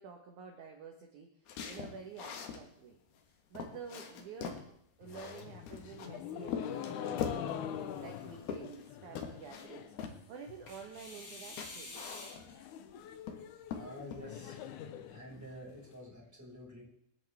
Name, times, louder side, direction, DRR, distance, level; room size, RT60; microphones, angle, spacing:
voice 1, 0.0-3.0 3.5-4.7 5.0-12.2, right 6 dB, 60° right, 3 dB, 2.2 m, -50 dB
sound 1, 1.5-2.6 3.1-3.2 3.5-4.7 5.1-6.1 6.5-7.5 8.1-8.9 9.2-9.7 10.0-10.2 11.2-11.3 11.6-12.6 13.0-13.4 13.7-14.2, left 7 dB, 70° left, 3.5 m, -41 dB
sound 2, 5.0-10.0 10.3-10.9 11.2-11.3 11.5-11.6 11.9-15.9, left 9 dB, 90° left, 1.7 m, -44 dB
sound 3, 5.6-6.4 7.5-8.6 10.7-12.6, left 2 dB, 35° left, 3.3 m, -50 dB
voice 2, 13.7-14.6 15.1-16.8, equal, 5° right, -4 dB, 5.2 m, -49 dB
26.5 x 11.0 x 3.6 m, 0.73 s
omnidirectional pair, 4.8 m